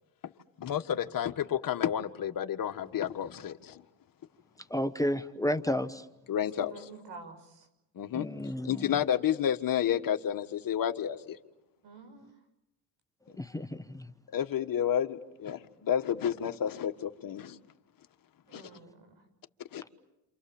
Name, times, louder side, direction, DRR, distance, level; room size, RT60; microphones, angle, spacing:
voice 1, 0.6-3.8 6.3-6.9 7.9-8.3 8.6-11.4 14.3-17.6 18.5-18.6 19.7-19.8, left 9 dB, 50° left, 1.7 m, -30 dB
voice 2, 4.7-6.0 8.1-8.9 13.4-14.1, left 1 dB, 10° left, 1.1 m, -32 dB
voice 3, 6.5-7.6 11.8-12.3 18.5-19.2, right 4 dB, 75° right, 6.3 m, -48 dB
29.5 x 27.5 x 7.2 m
cardioid pair, 85°, 42 cm